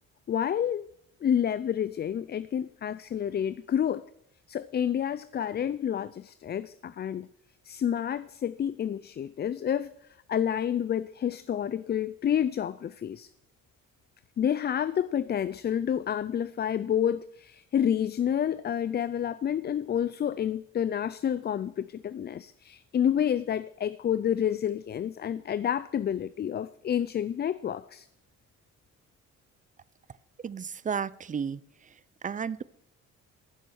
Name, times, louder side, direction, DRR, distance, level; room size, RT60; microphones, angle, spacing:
voice 1, 0.3-0.9 1.2-4.1 4.5-7.3 7.6-13.3 14.4-28.1, left 9 dB, 35° left, 0.4 m, -29 dB
voice 2, 30.4-31.6 32.2-32.6, right 6 dB, 25° right, 0.5 m, -32 dB
15.0 x 7.2 x 6.4 m
cardioid pair, 90°, 30 cm